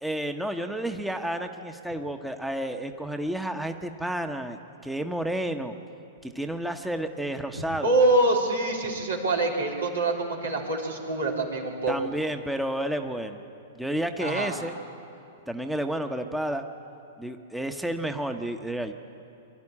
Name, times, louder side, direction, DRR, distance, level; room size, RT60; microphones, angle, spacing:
voice 1, 0.0-4.6 4.8-5.8 6.2-7.9 11.9-13.4 13.7-14.8 15.5-16.6 17.2-18.9, right 1 dB, 5° right, 6 dB, 1.0 m, -31 dB
voice 2, 7.5-12.0 14.2-14.6, right 2 dB, 85° right, -2 dB, 3.5 m, -25 dB
23.0 x 12.0 x 9.9 m, 2.6 s
hypercardioid pair, 110°, 0 cm